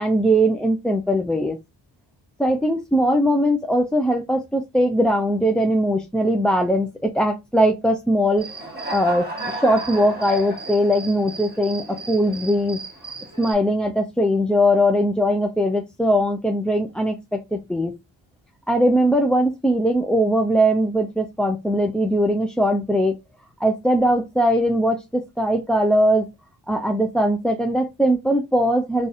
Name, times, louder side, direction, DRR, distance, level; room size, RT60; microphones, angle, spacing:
voice 1, 0.0-1.6 2.4-12.8 13.4-17.9 18.7-23.1 23.6-26.3 26.7-29.1, equal, ahead, 2 dB, 0.3 m, -20 dB
Human voice / Cricket, 8.4-13.5, right 2 dB, 20° right, 1.2 m, -34 dB
3.9 x 2.4 x 2.5 m, 0.22 s
cardioid pair, 75°, 45 cm